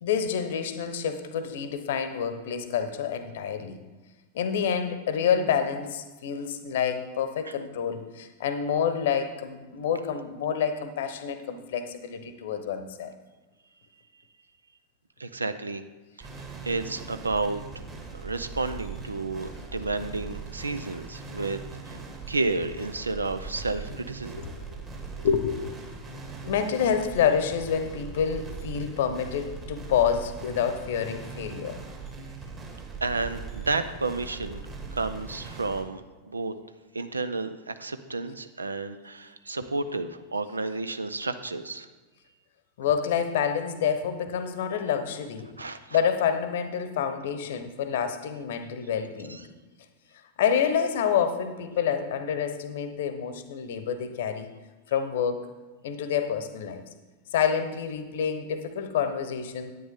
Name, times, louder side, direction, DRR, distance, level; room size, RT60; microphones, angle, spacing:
voice 1, 0.0-3.8 4.3-13.1 24.4-24.5 25.2-25.8 26.1-31.8 42.8-45.5 45.9-49.4 50.4-54.5 54.9-55.5 55.8-56.8 57.3-59.7, left 7 dB, 55° left, 10 dB, 0.9 m, -28 dB
voice 2, 15.2-15.8 16.2-16.3 16.6-17.6 18.1-21.6 21.8-22.0 22.3-24.4 33.0-34.6 34.9-36.5 36.9-41.9 45.6-46.0 49.3-49.4, right 3 dB, 80° right, 11 dB, 0.5 m, -31 dB
sound 1, 16.2-35.8, right 4 dB, 25° right, 1.9 m, -40 dB
10.0 x 9.1 x 3.6 m, 1.2 s
figure-of-eight pair, 90°, 0 cm